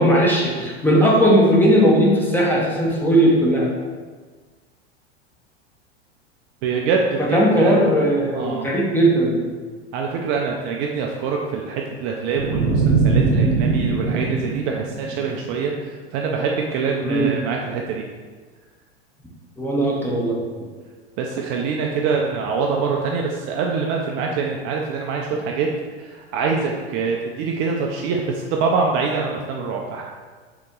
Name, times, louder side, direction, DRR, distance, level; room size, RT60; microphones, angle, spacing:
voice 1, 0.0-3.7 7.2-9.4 17.0-17.3 19.6-20.4, equal, 5° left, -4 dB, 0.7 m, -17 dB
voice 2, 6.6-7.8 8.3-8.7 9.9-18.1 21.2-25.7 26.0-30.0, right 5 dB, 40° right, 0 dB, 0.4 m, -24 dB
sound 1, 12.3-15.6, right 4 dB, 70° right, 0.9 m, -21 dB
3.9 x 2.9 x 3.6 m, 1.5 s
hypercardioid pair, 115°, 34 cm